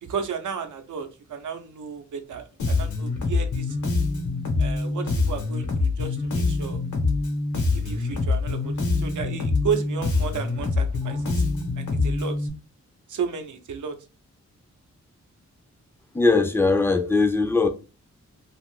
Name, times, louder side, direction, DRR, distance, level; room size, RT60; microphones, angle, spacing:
voice 1, 0.0-3.8 4.6-6.8 7.6-11.4 11.7-12.5 13.1-14.0, right 6 dB, 90° right, 0.6 m, -33 dB
Bass guitar, 2.6-12.5, left 3 dB, 80° left, 0.9 m, -25 dB
voice 2, 16.1-17.7, left 3 dB, 10° left, 0.3 m, -20 dB
2.6 x 2.4 x 3.5 m
wide cardioid pair, 155°, 29 cm